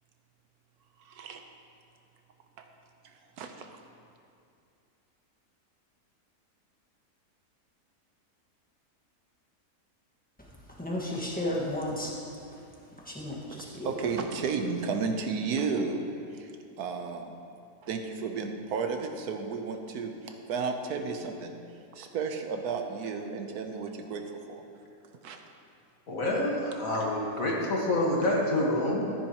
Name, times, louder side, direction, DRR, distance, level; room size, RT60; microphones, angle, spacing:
voice 1, 1.1-1.4 2.6-2.7 3.4-3.7 13.5-16.0 16.3-16.5 16.8-17.3 17.8-21.5 21.9-24.2 24.5-24.6 25.2-25.4, right 5 dB, 85° right, 5 dB, 1.3 m, -33 dB
voice 2, 10.8-12.1 13.1-13.9, left 1 dB, 5° left, -4 dB, 1.5 m, -33 dB
voice 3, 26.1-29.1, left 1 dB, 60° left, -3 dB, 2.0 m, -27 dB
13.5 x 10.5 x 3.0 m, 2.5 s
omnidirectional pair, 1.6 m